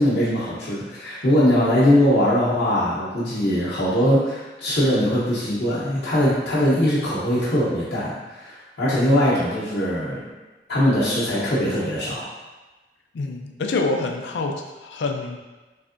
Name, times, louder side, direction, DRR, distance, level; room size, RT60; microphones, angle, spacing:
voice 1, 0.0-10.2 10.7-12.2, equal, 65° left, -10 dB, 0.8 m, -21 dB
voice 2, 13.1-15.4, left 3 dB, 80° left, 3 dB, 0.4 m, -26 dB
3.5 x 3.2 x 2.5 m, 1.2 s
head